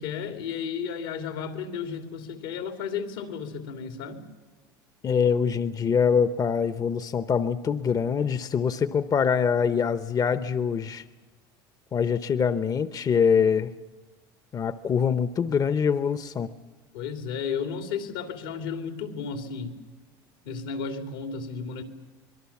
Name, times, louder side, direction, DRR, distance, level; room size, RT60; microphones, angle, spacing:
voice 1, 0.0-4.2 16.9-19.8 20.4-21.8, left 6 dB, 85° left, 6 dB, 2.9 m, -33 dB
voice 2, 5.0-11.0 11.9-13.7 14.5-16.5, left 6 dB, 35° left, 12 dB, 0.9 m, -24 dB
24.5 x 22.0 x 7.3 m, 1.3 s
supercardioid pair, 90°, 11 cm